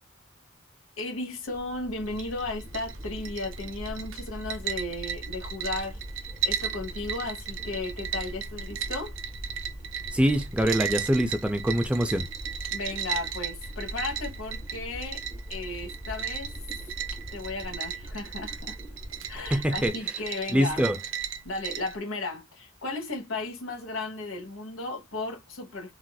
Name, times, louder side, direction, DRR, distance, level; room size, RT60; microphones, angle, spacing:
voice 1, 1.0-6.0 6.4-9.1 12.7-15.2 15.5-16.5 17.3-18.8 19.3-20.9 21.4-25.9, left 2 dB, 70° left, 1.2 m, -35 dB
sound 1, 1.5-19.9, equal, 25° left, 1.0 m, -41 dB
sound 2, 2.1-22.0, right 8 dB, 65° right, 0.5 m, -36 dB
voice 2, 10.1-12.3 19.5-19.9 20.5-21.0, equal, 5° right, 0.3 m, -24 dB
3.9 x 2.5 x 2.2 m
head